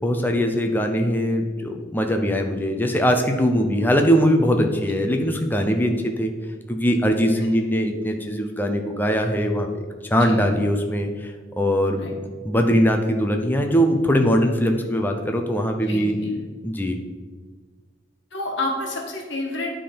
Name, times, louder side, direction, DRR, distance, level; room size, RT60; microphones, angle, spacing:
voice 1, 0.0-6.3 6.7-9.8 10.1-12.1 12.4-16.1 16.6-17.0, equal, 10° left, 4 dB, 0.5 m, -21 dB
voice 2, 10.2-10.7 12.0-12.1 15.9-16.3 18.3-19.7, left 2 dB, 60° left, 0 dB, 1.4 m, -29 dB
9.1 x 3.8 x 5.1 m, 1.4 s
head